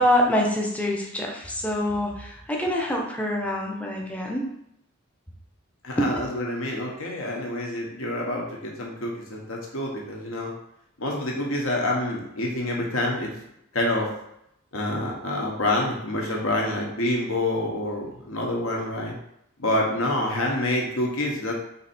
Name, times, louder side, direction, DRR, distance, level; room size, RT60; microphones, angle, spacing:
voice 1, 0.0-4.5 6.0-6.1, left 1 dB, 5° left, 0 dB, 0.6 m, -25 dB
voice 2, 5.8-10.5 11.0-13.3 13.7-14.1 14.7-19.2 19.6-21.5, left 1 dB, 70° left, -1 dB, 1.1 m, -27 dB
4.2 x 2.8 x 4.3 m, 0.78 s
head